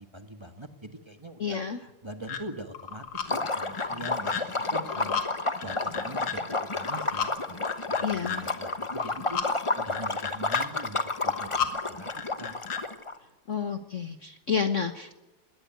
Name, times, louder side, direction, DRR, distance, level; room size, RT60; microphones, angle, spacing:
voice 1, 0.0-1.6 2.0-3.2 3.6-4.4 4.7-5.2 5.6-6.4 6.7-9.4 9.7-12.5, right 1 dB, 15° right, 8 dB, 1.3 m, -42 dB
voice 2, 1.4-1.8 8.0-8.5 13.5-15.2, left 6 dB, 45° left, 8 dB, 1.1 m, -30 dB
sound 1, 2.3-2.4 2.7-3.3 3.7-4.4 4.7-5.3 5.6-6.4 6.8-7.3 7.7-8.4 8.9-9.5 9.9-10.6 11.1-11.7 12.1-12.8, left 8 dB, 85° left, 3.1 m, -33 dB
Liquid, 3.2-13.1, left 3 dB, 20° left, 0.8 m, -31 dB
21.0 x 17.5 x 9.4 m, 1.0 s
omnidirectional pair, 2.3 m